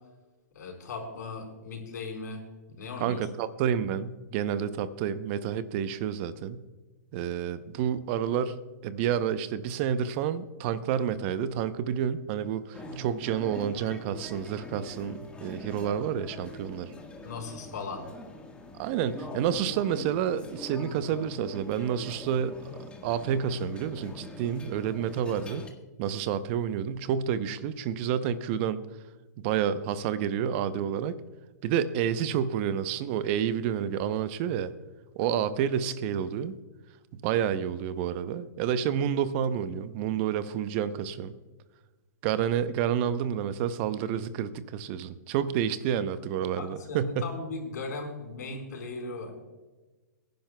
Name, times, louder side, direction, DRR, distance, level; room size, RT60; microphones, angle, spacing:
voice 1, 0.5-2.4 2.7-3.3 12.9-13.0 16.8-16.9 17.2-18.0 46.6-49.3, left 3 dB, 70° left, 1 dB, 4.4 m, -38 dB
voice 2, 3.0-6.6 7.1-8.6 8.8-16.9 18.8-22.6 23.0-25.6 26.0-28.8 29.4-31.2 31.6-34.7 35.2-36.6 37.1-41.3 42.2-47.2, right 9 dB, 40° right, 13 dB, 0.7 m, -29 dB
sound 1, 12.7-25.7, left 2 dB, 10° left, 1.5 m, -44 dB
22.5 x 10.5 x 2.2 m, 1.2 s
hypercardioid pair, 130°, 10 cm